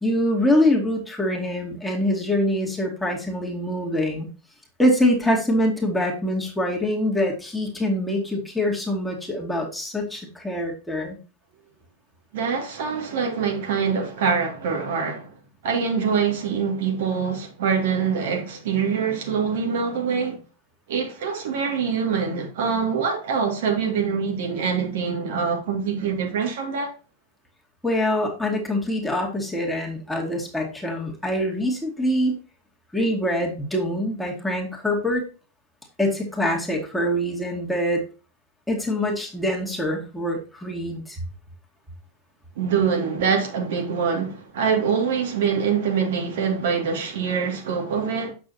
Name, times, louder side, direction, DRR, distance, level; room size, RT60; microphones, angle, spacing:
voice 1, 0.0-4.3 4.8-11.2 27.8-32.3 32.9-35.2 36.0-38.0 38.7-41.2, left 1 dB, 5° left, 2.4 m, -24 dB
voice 2, 12.3-15.4 15.6-20.4 20.9-26.9 42.6-48.3, right 6 dB, 55° right, 2.3 m, -24 dB
8.6 x 7.0 x 2.9 m
figure-of-eight pair, 90°, 0 cm